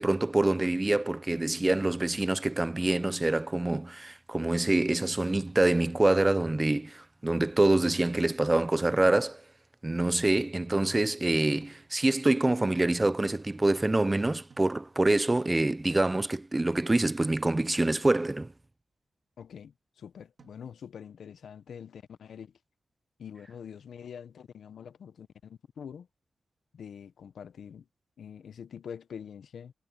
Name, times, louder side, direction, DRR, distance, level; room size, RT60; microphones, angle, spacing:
voice 1, 0.0-9.4 9.8-18.5, right 2 dB, 20° right, 0.4 m, -26 dB
sound 1, 11.6-12.4 14.5-15.3 17.4-18.2 20.4-21.2, right 5 dB, 50° right, 2.8 m, -62 dB
voice 2, 19.4-22.5 23.2-26.1 26.7-27.9 28.2-29.7, left 7 dB, 80° left, 0.7 m, -45 dB
wide cardioid pair, 110°, 0 cm